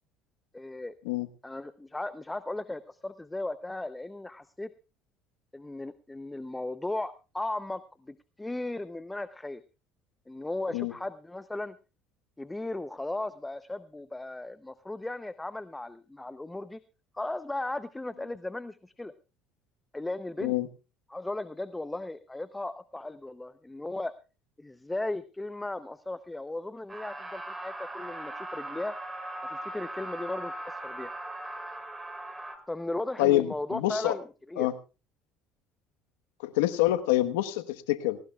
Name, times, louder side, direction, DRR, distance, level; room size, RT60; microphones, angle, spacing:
voice 1, 0.5-0.9 1.4-4.7 5.5-9.6 10.3-11.8 12.4-16.8 17.1-19.1 19.9-20.5 21.1-24.1 24.6-28.9 29.5-31.1 32.7-34.7, left 2 dB, 10° left, 13 dB, 0.7 m, -36 dB
sound 1, 26.9-32.6, right 1 dB, 15° right, 3.4 m, -39 dB
voice 2, 33.2-34.2 34.6-34.7 36.4-38.2, left 15 dB, 90° left, 11 dB, 1.2 m, -26 dB
20.0 x 18.5 x 2.4 m, 0.31 s
supercardioid pair, 90°, 0 cm